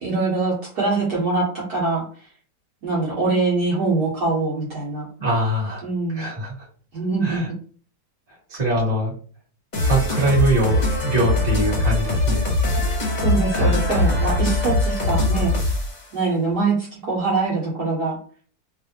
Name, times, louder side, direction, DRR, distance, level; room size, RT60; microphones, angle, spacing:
voice 1, 0.0-2.0 2.8-5.1 5.8-6.3 6.9-7.6 12.7-15.5 16.1-18.2, right 3 dB, 60° right, -6 dB, 1.6 m, -23 dB
voice 2, 5.2-5.8 6.1-6.5 7.2-7.5 8.5-9.1 9.8-12.5 13.5-13.7, right 1 dB, 30° right, -4 dB, 1.6 m, -23 dB
sound 1, 9.7-16.0, left 2 dB, 35° left, 0.7 m, -21 dB
3.3 x 2.6 x 2.8 m, 0.43 s
omnidirectional pair, 2.0 m